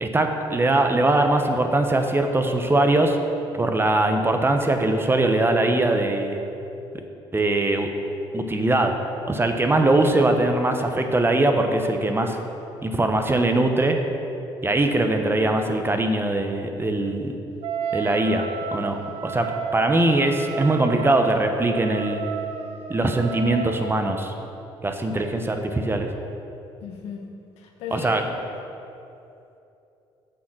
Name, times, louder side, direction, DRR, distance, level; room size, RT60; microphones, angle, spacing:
voice 1, 0.0-3.2 3.6-6.4 7.3-7.9 8.3-8.9 9.3-12.4 12.8-14.0 14.6-17.4 17.9-22.2 22.9-24.3 24.8-26.1 27.9-28.2, right 2 dB, 20° right, 5 dB, 1.0 m, -21 dB
Wind instrument woodwind instrument, 17.6-24.2, right 7 dB, 65° right, 0.8 m, -32 dB
voice 2, 26.8-28.5, left 4 dB, 80° left, 1 dB, 1.3 m, -37 dB
7.8 x 6.4 x 6.2 m, 2.8 s
supercardioid pair, 70°, 11 cm